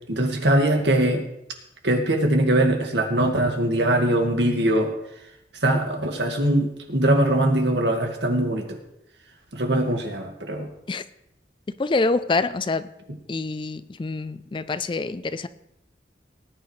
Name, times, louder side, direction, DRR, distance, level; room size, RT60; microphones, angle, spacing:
voice 1, 0.1-1.2 1.8-4.9 5.6-8.8 9.5-10.7, right 1 dB, 85° right, 3 dB, 1.9 m, -21 dB
voice 2, 11.8-12.9 13.3-15.5, left 3 dB, 30° left, 14 dB, 0.4 m, -26 dB
18.5 x 9.4 x 3.2 m, 0.83 s
head